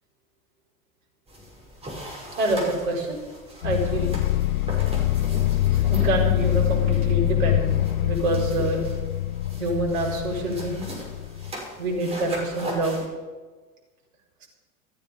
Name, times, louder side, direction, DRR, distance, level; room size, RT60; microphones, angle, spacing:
sound 1, 1.3-13.1, equal, 15° right, 6.2 m, -39 dB
voice 1, 2.4-3.3 3.6-4.2 5.8-8.8 9.6-10.8 11.8-13.0, right 2 dB, 60° right, 0 dB, 5.2 m, -26 dB
sound 2, 3.6-11.5, left 14 dB, 75° left, 0.8 m, -24 dB
14.5 x 14.0 x 5.4 m, 1.3 s
figure-of-eight pair, 90°, 44 cm